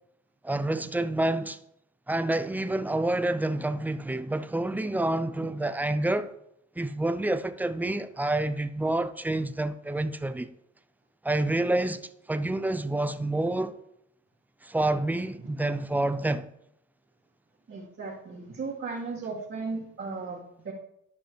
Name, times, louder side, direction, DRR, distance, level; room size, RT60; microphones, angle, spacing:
voice 1, 0.4-1.6 2.1-6.3 6.8-10.5 11.2-13.8 14.6-16.5, right 2 dB, 5° right, 0.4 m, -28 dB
voice 2, 17.7-20.7, right 4 dB, 45° right, 1.9 m, -36 dB
12.5 x 5.3 x 3.2 m
cardioid pair, 90°, 30 cm